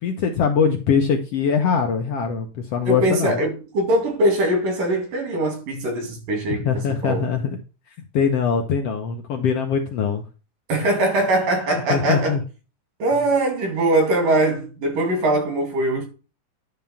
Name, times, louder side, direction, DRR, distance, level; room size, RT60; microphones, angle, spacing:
voice 1, 0.0-3.4 6.5-7.5 8.1-10.2 11.9-12.4, left 6 dB, 70° left, 1.5 m, -22 dB
voice 2, 2.9-7.2 10.7-12.4 13.0-16.1, right 1 dB, 80° right, 4.2 m, -21 dB
10.5 x 3.6 x 7.0 m
omnidirectional pair, 3.7 m